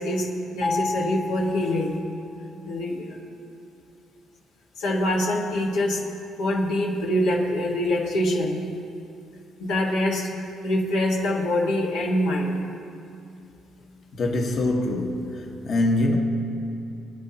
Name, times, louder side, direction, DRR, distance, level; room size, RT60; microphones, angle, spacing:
voice 1, 0.0-2.0 2.6-3.2 4.8-6.0 6.4-8.6 9.6-10.3 10.6-12.6, left 1 dB, 90° left, 1.5 m, -24 dB
Mallet percussion, 0.6-2.6, left 3 dB, 30° left, 0.3 m, -31 dB
voice 2, 14.1-16.2, left 2 dB, 50° left, 1.2 m, -24 dB
24.5 x 9.8 x 2.9 m
cardioid pair, 85°, 0 cm